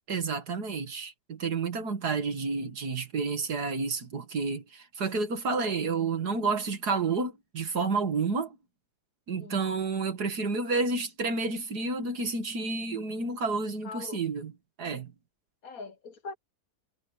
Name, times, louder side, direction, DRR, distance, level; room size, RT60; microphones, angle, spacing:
voice 1, 0.1-8.6 9.3-14.5 14.8-15.1, right 4 dB, 70° right, 2.6 m, -30 dB
voice 2, 13.8-14.2 15.6-16.3, left 4 dB, 60° left, 1.9 m, -41 dB
omnidirectional pair, 1.7 m